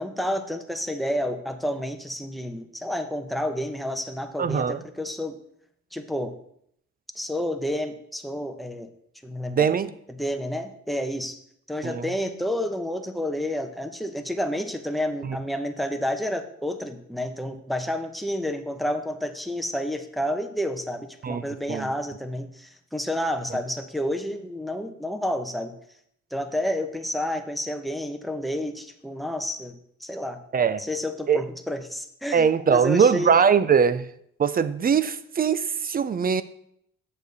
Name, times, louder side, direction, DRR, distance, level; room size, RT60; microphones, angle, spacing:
voice 1, 0.0-5.4 5.9-6.3 7.2-8.9 9.2-9.7 10.1-11.4 11.7-25.7 26.3-29.7 30.0-30.4 30.8-33.4, left 1 dB, ahead, 0.8 m, -30 dB
voice 2, 4.4-4.8 9.5-9.9 11.8-12.0 15.3-15.4 21.2-21.4 21.7-21.9 30.5-30.8 31.3-31.4 32.3-34.1 34.4-36.4, right 6 dB, 30° right, 0.4 m, -21 dB
7.3 x 6.8 x 4.0 m
cardioid pair, 90°, 30 cm